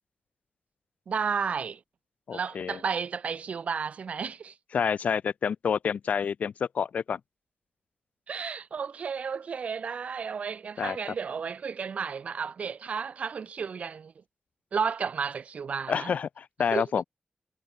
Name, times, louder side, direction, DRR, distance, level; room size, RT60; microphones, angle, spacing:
voice 1, 1.1-1.8 2.3-4.5 8.3-14.1 14.7-16.1 16.7-16.8, right 6 dB, 65° right, 0.9 m, -32 dB
voice 2, 2.3-2.8 4.7-7.2 10.8-11.0 15.9-17.0, left 7 dB, 75° left, 0.7 m, -28 dB
wide cardioid pair, 115°, 2 cm